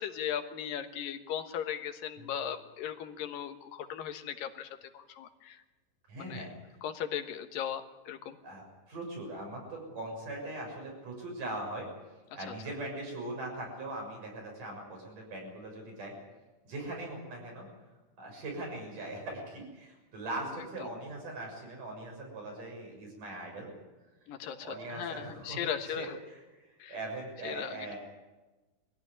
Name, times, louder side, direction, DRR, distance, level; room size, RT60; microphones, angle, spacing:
voice 1, 0.0-5.6 6.2-6.5 6.8-8.4 20.8-20.9 24.3-26.1 26.8-26.9 27.4-27.9, left 9 dB, 90° left, 7 dB, 3.1 m, -37 dB
voice 2, 6.1-6.5 8.4-11.9 12.4-16.1 16.6-17.7 18.2-23.7 24.6-25.6 25.9-28.0, right 2 dB, 70° right, 0 dB, 8.5 m, -40 dB
24.0 x 15.5 x 9.8 m, 1.2 s
omnidirectional pair, 3.9 m